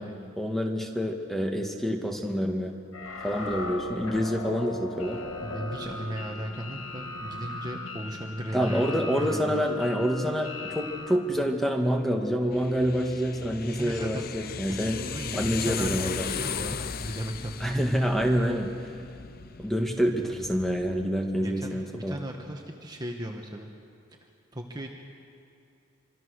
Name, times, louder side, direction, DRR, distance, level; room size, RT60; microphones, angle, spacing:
voice 1, 0.4-2.8 3.2-5.2 8.5-15.0 15.3-16.3 17.6-18.7 19.6-22.2, equal, ahead, 2 dB, 1.9 m, -27 dB
sound 1, 2.9-11.2, left 2 dB, 75° left, 2.3 m, -38 dB
voice 2, 5.4-9.6 13.8-14.3 14.8-17.7 21.4-23.7 24.5-24.9, right 1 dB, 20° right, 2 dB, 1.6 m, -36 dB
sound 2, 12.5-21.1, left 6 dB, 45° left, 0.7 m, -37 dB
26.5 x 25.0 x 6.6 m, 2.6 s
head